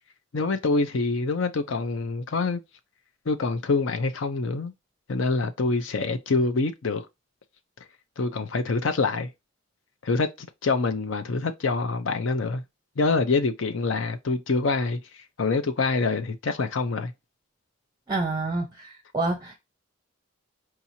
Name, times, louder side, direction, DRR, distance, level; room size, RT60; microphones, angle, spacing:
voice 1, 0.3-2.6 3.3-4.7 5.1-7.1 8.2-9.3 10.0-12.6 13.0-15.0 15.4-17.1, left 3 dB, 65° left, 0.5 m, -25 dB
voice 2, 18.1-19.6, right 2 dB, 20° right, 0.6 m, -28 dB
4.7 x 2.9 x 2.7 m
head